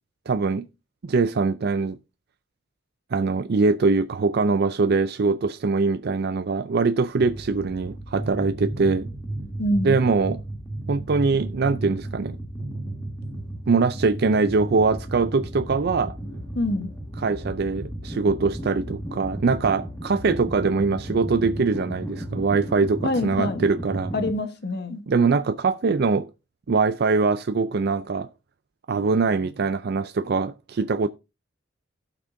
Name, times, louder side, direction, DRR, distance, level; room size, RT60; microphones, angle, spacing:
voice 1, 0.3-0.7 1.1-2.0 3.1-9.1 9.8-10.4 10.9-12.4 13.7-16.2 17.2-24.1 25.1-26.3 26.7-28.3 28.9-31.1, right 4 dB, 55° right, 0.4 m, -22 dB
sound 1, 7.2-24.3, right 1 dB, 15° left, 1.7 m, -34 dB
voice 2, 9.6-10.0 16.5-16.9 23.0-23.6 24.1-25.0, left 1 dB, 55° left, 1.2 m, -25 dB
16.5 x 6.0 x 2.6 m
head